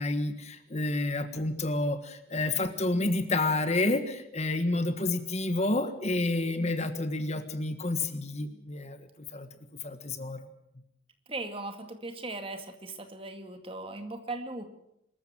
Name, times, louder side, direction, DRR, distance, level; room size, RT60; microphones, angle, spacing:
voice 1, 0.0-9.5 9.8-10.5, left 2 dB, 35° left, 10 dB, 1.6 m, -29 dB
voice 2, 11.3-14.7, right 2 dB, 30° right, 7 dB, 2.3 m, -38 dB
24.0 x 14.0 x 9.0 m, 0.80 s
head